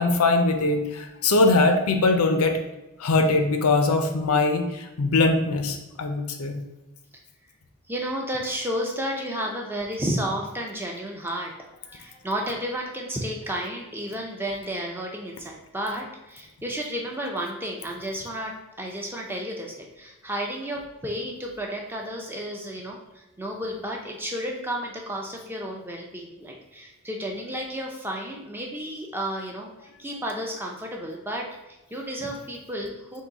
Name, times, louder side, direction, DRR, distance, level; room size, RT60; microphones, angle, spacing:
voice 1, 0.0-2.6 3.0-6.6, left 3 dB, 80° left, 5 dB, 0.5 m, -21 dB
voice 2, 7.9-11.5 11.9-33.2, equal, 10° right, 0 dB, 0.4 m, -32 dB
3.8 x 2.7 x 3.9 m, 0.99 s
head